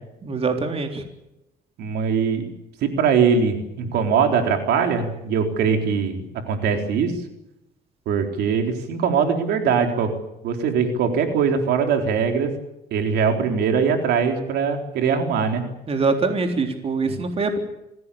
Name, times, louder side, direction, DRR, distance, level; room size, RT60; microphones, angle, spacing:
voice 1, 0.2-1.0 15.9-17.6, right 4 dB, 35° right, 5 dB, 3.8 m, -23 dB
voice 2, 1.8-2.5 2.8-7.1 8.1-10.1 10.4-12.5 12.9-15.6 17.0-17.2, right 6 dB, 75° right, 5 dB, 4.0 m, -21 dB
26.0 x 17.5 x 8.6 m, 0.89 s
cardioid pair, 110°, 17 cm